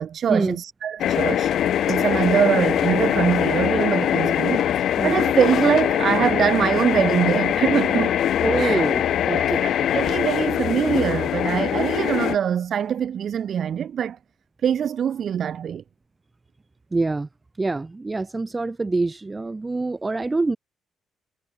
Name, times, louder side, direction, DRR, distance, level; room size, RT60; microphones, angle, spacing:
voice 1, 0.0-1.5 1.9-8.2 8.6-8.8 9.3-14.2 14.6-15.8, right 8 dB, 60° right, 3.5 m, -23 dB
sound 1, 1.0-12.4, left 10 dB, 70° left, 1.3 m, -22 dB
voice 2, 8.4-9.7 16.9-17.3 17.6-20.6, right 3 dB, 20° right, 6.6 m, -25 dB
cardioid pair, 90°, 0 cm